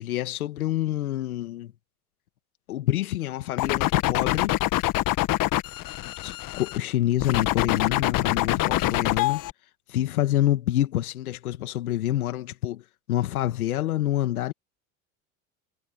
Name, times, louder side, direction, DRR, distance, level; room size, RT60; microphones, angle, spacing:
voice 1, 0.0-1.7 2.7-4.5 6.2-9.4 9.9-12.8 13.1-14.5, left 13 dB, 90° left, 2.0 m, -27 dB
sound 1, 3.6-6.8 7.2-9.5, left 16 dB, 50° left, 1.4 m, -25 dB
hypercardioid pair, 85°, 42 cm